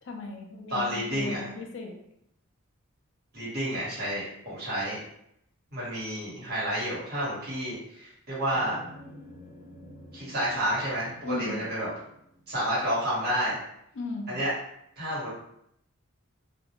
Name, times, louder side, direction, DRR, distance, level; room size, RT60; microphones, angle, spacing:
voice 1, 0.0-2.0 11.2-11.6 13.9-14.4, left 2 dB, 60° left, 2 dB, 0.4 m, -37 dB
voice 2, 0.7-1.4 3.3-5.0 5.7-8.7 10.1-11.9 12.5-13.6 14.3-14.5 15.0-15.3, equal, 45° right, -8 dB, 1.2 m, -30 dB
sound 1, 8.5-13.0, left 1 dB, 40° left, 0.9 m, -49 dB
2.4 x 2.0 x 2.9 m, 0.75 s
head